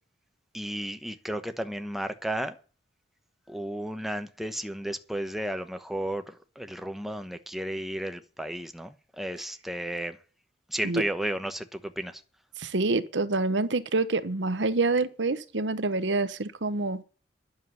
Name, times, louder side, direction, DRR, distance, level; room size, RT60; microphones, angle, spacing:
voice 1, 0.5-2.6 3.5-10.2 10.7-12.2, right 1 dB, ahead, 1.1 m, -33 dB
voice 2, 12.6-17.0, right 3 dB, 75° right, 1.0 m, -27 dB
11.0 x 7.3 x 9.6 m
head